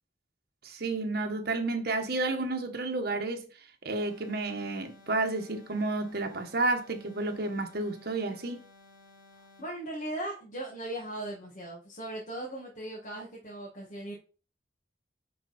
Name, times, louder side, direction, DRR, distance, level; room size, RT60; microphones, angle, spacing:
voice 1, 0.6-3.4 3.8-8.6, right 2 dB, 60° right, 1.4 m, -31 dB
sound 1, 3.9-9.8, left 2 dB, 85° left, 3.2 m, -57 dB
voice 2, 9.6-14.1, right 1 dB, 45° left, 2.0 m, -38 dB
9.3 x 4.3 x 4.3 m
head